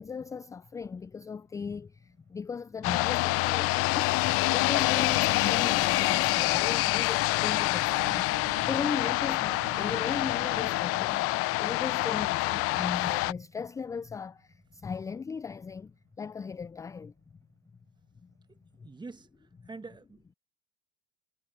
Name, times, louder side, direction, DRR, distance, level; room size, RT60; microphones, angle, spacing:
voice 1, 0.0-17.1 18.2-18.3 18.8-18.9, left 5 dB, 10° left, 0.3 m, -37 dB
sound 1, 2.8-13.3, left 21 dB, 50° left, 0.6 m, -26 dB
sound 2, 6.0-14.0 14.3-15.4 16.3-16.4 17.3-17.4 19.1-19.2, right 12 dB, 45° right, 5.7 m, -48 dB
voice 2, 18.8-19.3 19.6-20.3, right 3 dB, 15° right, 1.4 m, -45 dB
hypercardioid pair, 90°, 29 cm